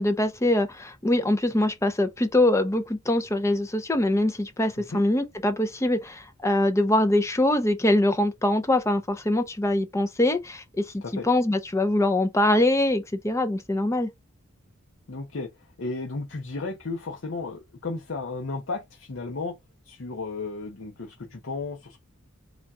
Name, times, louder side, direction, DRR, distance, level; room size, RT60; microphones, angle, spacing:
voice 1, 0.0-10.8 11.2-14.1, left 1 dB, 15° left, 0.6 m, -23 dB
voice 2, 15.1-15.5 15.8-19.5 19.8-22.0, left 3 dB, 70° left, 0.7 m, -34 dB
3.9 x 2.4 x 4.2 m
head